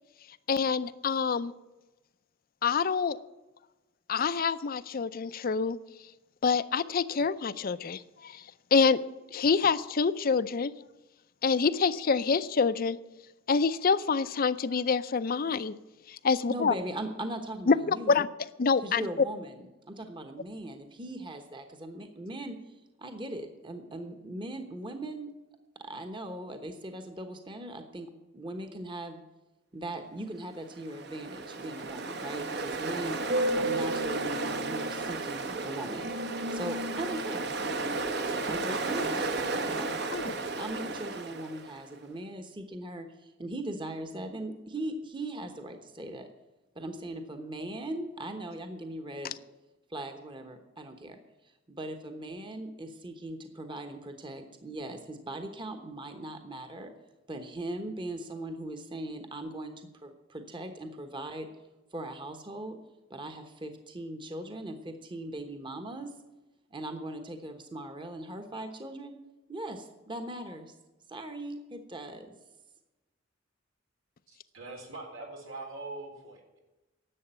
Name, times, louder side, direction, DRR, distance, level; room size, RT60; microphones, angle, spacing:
voice 1, 0.5-1.5 2.6-3.2 4.1-5.8 6.4-8.4 8.7-9.0 9.3-10.7 11.4-13.0 13.5-15.7 16.1-16.7 17.7-18.3 18.6-19.0 40.1-40.3, left 5 dB, 50° left, 0.5 m, -26 dB
voice 2, 16.5-18.1 18.8-22.6 23.0-25.3 25.8-29.2 29.7-33.2 33.5-36.1 36.5-37.4 37.9-46.3 46.7-49.3 49.9-51.2 51.7-56.9 57.3-59.7 60.0-61.5 61.9-62.8 63.1-66.1 66.7-69.2 69.5-70.7 71.1-72.3, right 1 dB, 25° right, 1.1 m, -39 dB
Ocean, 30.7-41.8, right 2 dB, 60° right, 1.2 m, -33 dB
voice 3, 74.3-76.6, right 2 dB, 85° right, 4.0 m, -43 dB
11.0 x 7.8 x 8.9 m
head